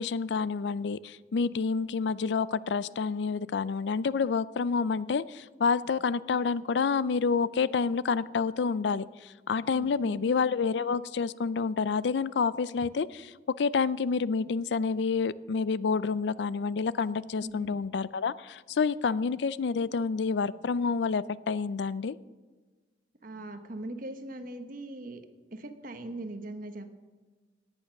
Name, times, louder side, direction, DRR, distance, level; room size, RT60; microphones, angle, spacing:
voice 1, 0.0-22.2, left 5 dB, 70° left, 18 dB, 0.4 m, -28 dB
voice 2, 9.7-10.2 17.4-17.7 23.2-25.2 25.5-26.9, right 1 dB, 50° right, 7 dB, 1.2 m, -40 dB
17.5 x 9.0 x 5.9 m, 1.3 s
head